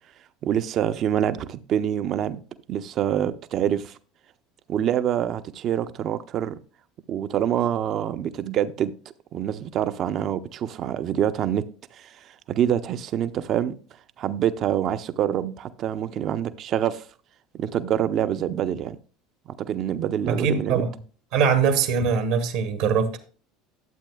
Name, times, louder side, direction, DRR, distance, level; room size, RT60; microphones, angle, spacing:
voice 1, 0.4-2.4 2.7-4.0 4.7-6.6 7.1-8.9 9.3-11.7 11.9-13.8 14.2-17.0 17.5-19.0 19.6-20.8, right 10 dB, 50° right, 0.6 m, -26 dB
voice 2, 20.3-20.9 21.3-23.2, right 6 dB, 70° right, 1.2 m, -22 dB
12.0 x 7.6 x 2.3 m
hypercardioid pair, 80°, 0 cm